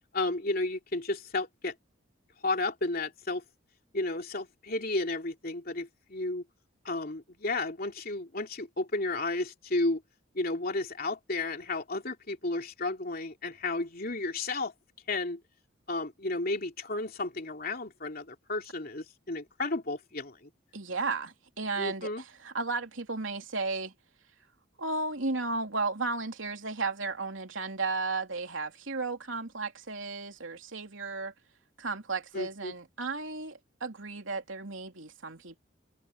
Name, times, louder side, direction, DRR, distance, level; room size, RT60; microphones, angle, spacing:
voice 1, 0.1-1.7 2.4-3.4 3.9-6.4 6.8-10.0 10.3-14.7 15.1-15.4 15.9-20.4 21.8-22.2 32.3-32.7, left 2 dB, 50° left, 3.0 m, -32 dB
voice 2, 20.7-23.9 24.8-31.3 31.8-35.6, right 3 dB, 85° right, 3.1 m, -34 dB
head